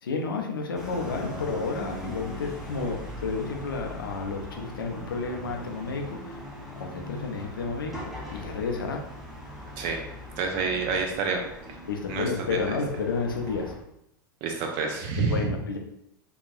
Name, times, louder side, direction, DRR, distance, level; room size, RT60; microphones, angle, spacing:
voice 1, 0.0-6.4 6.8-9.0 11.9-13.7 15.3-15.8, left 4 dB, 75° left, 2 dB, 0.5 m, -31 dB
sound 1, 0.8-13.8, equal, ahead, 0.6 m, -40 dB
voice 2, 10.4-11.4 11.7-11.8 12.1-12.3 12.5-12.6 14.4-15.5, right 4 dB, 45° right, 2 dB, 0.6 m, -28 dB
2.7 x 2.2 x 2.4 m, 0.76 s
figure-of-eight pair, 85°, 12 cm